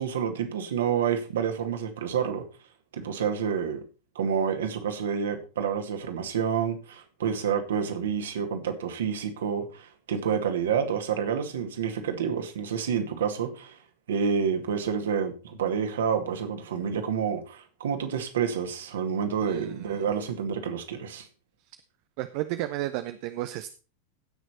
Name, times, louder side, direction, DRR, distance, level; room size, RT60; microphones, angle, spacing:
voice 1, 0.0-2.4 2.9-3.8 4.2-13.8 14.1-21.3, right 7 dB, 60° right, 2.2 m, -28 dB
voice 2, 19.4-20.0 22.2-23.8, right 15 dB, 45° right, 0.7 m, -33 dB
16.5 x 6.3 x 4.4 m
figure-of-eight pair, 90°, 0 cm